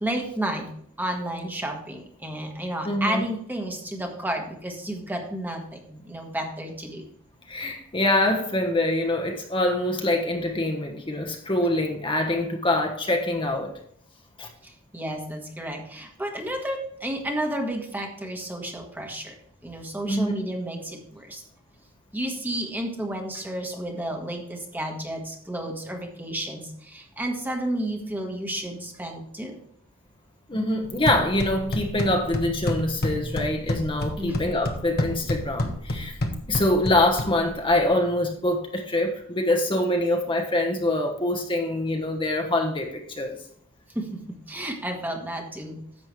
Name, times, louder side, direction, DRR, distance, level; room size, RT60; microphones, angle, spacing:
voice 1, 0.0-0.7 1.0-7.0 14.6-19.4 19.6-21.4 22.1-29.5 34.2-34.4 43.9-45.8, right 1 dB, 10° right, 2 dB, 1.4 m, -31 dB
voice 2, 2.8-3.2 7.5-13.7 14.4-14.5 20.1-20.3 30.5-36.1 36.5-43.4, left 1 dB, 25° left, 2 dB, 1.2 m, -24 dB
sound 1, 30.8-37.8, left 1 dB, 50° left, 1.3 m, -30 dB
10.5 x 7.6 x 3.2 m, 0.66 s
head